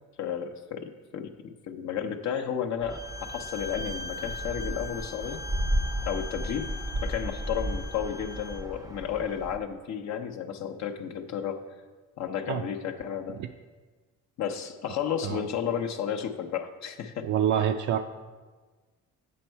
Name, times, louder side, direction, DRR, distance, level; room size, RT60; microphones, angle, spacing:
voice 1, 0.2-3.0 3.3-5.4 6.0-11.6 12.2-13.4 14.4-17.3, left 8 dB, 65° left, 5 dB, 0.7 m, -33 dB
sound 1, 2.8-9.6, right 1 dB, 10° right, 0.5 m, -34 dB
Bowed string instrument, 2.9-8.7, left 3 dB, 35° left, 0.9 m, -41 dB
voice 2, 17.2-18.0, right 9 dB, 75° right, 4 dB, 0.5 m, -26 dB
8.5 x 5.3 x 4.5 m, 1.4 s
cardioid pair, 90°, 30 cm